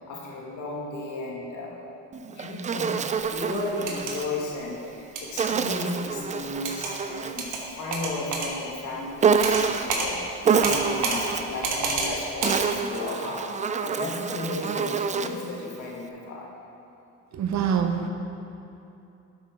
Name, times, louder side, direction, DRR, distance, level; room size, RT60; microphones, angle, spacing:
voice 1, 0.1-1.8 2.1-16.5, left 2 dB, 80° left, -3 dB, 1.9 m, -34 dB
Insect, 2.1-4.3 5.4-7.5 9.2-10.0 10.4-11.6 12.2-15.5, right 6 dB, 25° right, 0.3 m, -27 dB
sound 1, 3.7-4.1 5.2-5.4 6.6-6.9 7.4-7.6 7.9-8.5 9.4-9.6 9.9-10.1 10.6-11.2 11.6-12.1 12.4-12.6, right 4 dB, 85° right, 1.4 m, -28 dB
voice 2, 17.3-18.1, right 7 dB, 65° right, 6 dB, 0.8 m, -25 dB
12.0 x 6.2 x 3.6 m, 2.8 s
cardioid pair, 90°, 30 cm